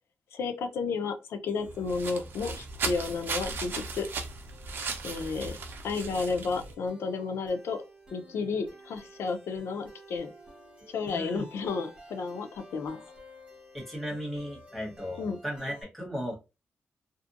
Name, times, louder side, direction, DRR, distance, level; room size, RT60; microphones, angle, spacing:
voice 1, 0.3-4.1 5.0-5.6 5.8-7.8 8.1-10.3 10.9-13.0 15.2-15.4, left 4 dB, 85° left, 0.5 m, -32 dB
sound 1, 1.5-15.8, equal, 25° right, 1.5 m, -54 dB
sound 2, 1.6-6.7, right 4 dB, 60° right, 0.5 m, -36 dB
voice 2, 11.1-11.4 13.7-16.3, equal, 5° left, 1.0 m, -36 dB
2.6 x 2.5 x 2.4 m
wide cardioid pair, 155°, 4 cm